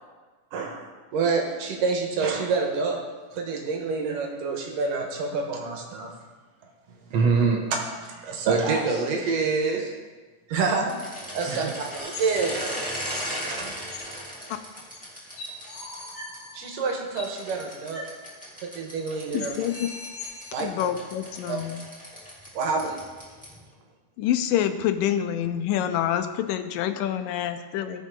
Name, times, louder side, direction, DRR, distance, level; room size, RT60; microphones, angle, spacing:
voice 1, 0.5-3.0 3.3-6.1 8.0-8.8 10.5-11.0 11.3-13.7 16.5-18.0 18.6-19.6 20.5-20.7 21.5-21.6 22.5-23.0, right 4 dB, 80° right, 2 dB, 2.9 m, -28 dB
voice 2, 6.9-7.6 8.5-9.9 11.5-11.7, right 4 dB, 60° right, 0 dB, 2.0 m, -24 dB
sound 1, 10.9-16.4 17.2-23.6, equal, 5° left, 2.3 m, -37 dB
sound 2, 12.0-13.4 13.9-14.0 14.9-15.0 15.4-17.4 17.9-18.1 18.4-18.5 18.9-19.0 19.4-20.6, left 3 dB, 50° left, 3.1 m, -41 dB
voice 3, 19.3-19.9 20.6-21.8 24.2-28.0, left 10 dB, 90° left, 9 dB, 2.4 m, -27 dB
16.5 x 6.2 x 3.8 m, 1.3 s
omnidirectional pair, 3.8 m